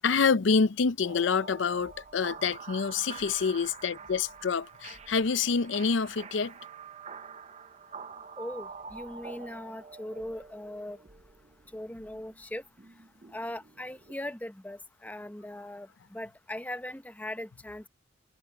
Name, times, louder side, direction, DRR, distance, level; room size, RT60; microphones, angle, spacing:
voice 1, 0.0-6.5, left 5 dB, 80° left, 0.6 m, -27 dB
sound 1, 1.0-14.1, right 5 dB, 35° right, 0.6 m, -47 dB
voice 2, 8.4-11.0 11.7-12.6 13.3-17.9, left 1 dB, 10° left, 0.7 m, -39 dB
head